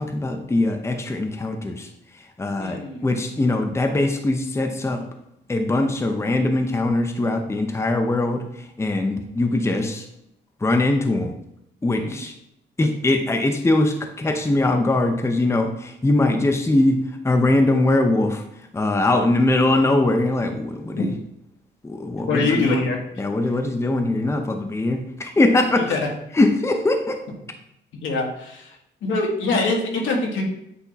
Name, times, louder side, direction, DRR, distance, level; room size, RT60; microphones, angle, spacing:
voice 1, 0.0-1.9 2.4-5.0 5.5-10.1 10.6-11.3 11.8-12.3 12.8-18.4 18.7-21.1 21.8-22.9 23.2-25.9 26.3-27.2, left 2 dB, 15° left, 5 dB, 0.7 m, -21 dB
voice 2, 2.6-3.0 12.0-12.2 21.0-21.1 22.3-23.0 25.9-26.1 28.0-28.7 29.0-30.4, left 3 dB, 75° left, 0 dB, 1.6 m, -24 dB
8.3 x 2.8 x 4.0 m, 0.78 s
cardioid pair, 90°, 20 cm